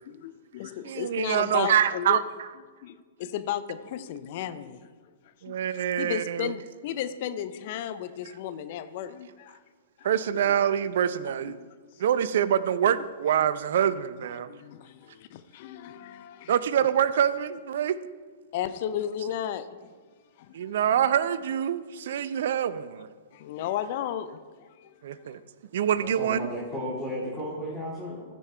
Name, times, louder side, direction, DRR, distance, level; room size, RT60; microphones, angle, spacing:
voice 1, 0.1-2.2 2.8-9.6 10.0-10.6 11.4-11.6 11.8-12.0 13.4-13.5 14.5-16.5 18.5-19.9 20.4-20.7 23.3-25.4, left 10 dB, 50° left, 0.6 m, -35 dB
voice 2, 0.8-2.2 5.4-6.5 10.0-11.6 12.0-14.5 16.5-18.0 20.5-23.1 25.0-25.4 25.7-26.4, right 9 dB, 65° right, 0.5 m, -25 dB
voice 3, 25.9-28.2, equal, 10° left, 3.1 m, -34 dB
14.0 x 5.3 x 4.5 m
hypercardioid pair, 115°, 0 cm